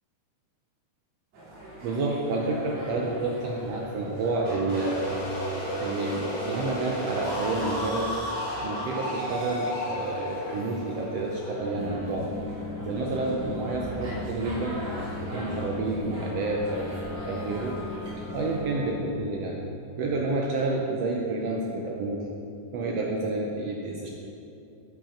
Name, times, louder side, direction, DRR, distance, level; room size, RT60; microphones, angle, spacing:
sound 1, 1.3-18.6, equal, 60° right, 3.3 m, -42 dB
voice 1, 1.8-5.2 5.8-8.1 8.6-12.3 12.8-14.8 15.2-17.8 18.3-19.6 20.0-22.2 22.7-24.1, right 2 dB, 80° right, -1 dB, 1.4 m, -29 dB
sound 2, 4.4-12.1, equal, 35° left, 0.6 m, -33 dB
sound 3, 11.7-19.0, left 3 dB, 75° left, 1.9 m, -38 dB
8.9 x 7.8 x 5.1 m, 2.7 s
omnidirectional pair, 3.8 m